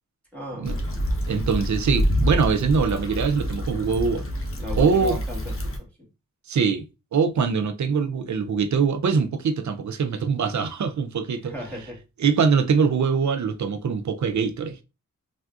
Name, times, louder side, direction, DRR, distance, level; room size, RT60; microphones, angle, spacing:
voice 1, 0.3-1.0 4.6-5.9 11.4-12.0, equal, 5° left, 1.3 m, -36 dB
Stream / Traffic noise roadway noise / Trickle dribble, 0.6-5.8, equal, 40° left, 0.9 m, -27 dB
voice 2, 1.3-4.2 4.8-5.2 6.5-11.5 12.2-14.8, right 5 dB, 55° right, 0.5 m, -23 dB
3.3 x 2.6 x 2.3 m
cardioid pair, 45°, 34 cm